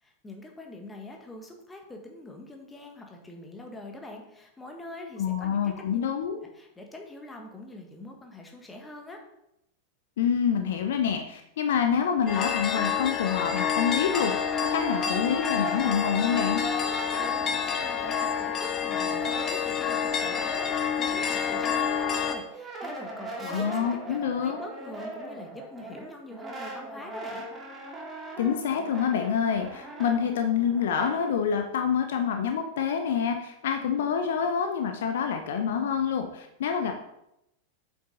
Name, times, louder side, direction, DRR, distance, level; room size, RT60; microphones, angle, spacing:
voice 1, 0.0-6.0 6.5-9.2 17.2-27.5, left 2 dB, 10° left, 2 dB, 1.5 m, -44 dB
voice 2, 5.2-6.4 10.2-16.6 23.4-24.6 28.4-36.9, left 7 dB, 60° left, 5 dB, 0.8 m, -27 dB
sound 1, 12.3-22.3, left 7 dB, 25° left, 0.9 m, -28 dB
Brass instrument, 14.3-18.7 19.0-31.2, right 2 dB, 20° right, 1.9 m, -40 dB
8.1 x 6.2 x 4.0 m, 0.82 s
figure-of-eight pair, 90°, 0 cm